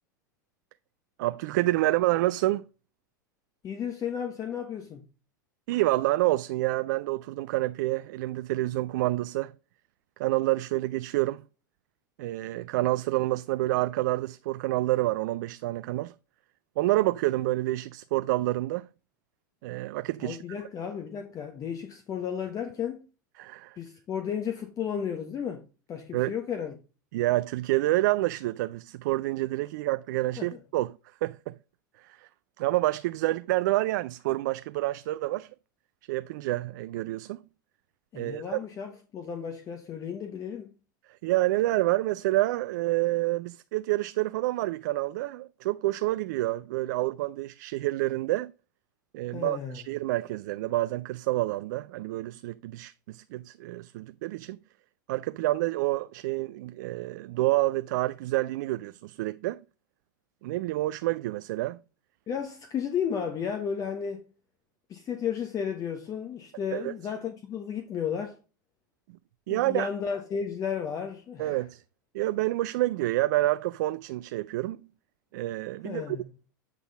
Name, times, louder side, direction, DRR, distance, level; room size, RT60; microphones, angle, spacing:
voice 1, 1.2-2.6 5.7-9.5 10.2-11.4 12.2-16.1 16.8-18.9 19.6-20.4 23.4-23.8 26.1-26.3 27.1-31.5 32.0-32.3 32.6-35.5 36.1-37.4 38.1-38.6 41.2-48.5 49.1-54.6 55.1-59.6 60.4-61.8 66.7-66.9 69.5-69.9 71.4-71.8 72.1-74.8 75.3-76.2, right 17 dB, 65° right, 0.4 m, -28 dB
voice 2, 3.6-5.0 20.2-23.1 23.8-26.8 30.4-30.6 38.1-40.7 49.3-49.8 62.3-64.3 64.9-68.4 69.5-71.6 75.8-76.2, left 7 dB, 35° left, 1.1 m, -33 dB
8.8 x 3.9 x 4.1 m
hypercardioid pair, 95°, 11 cm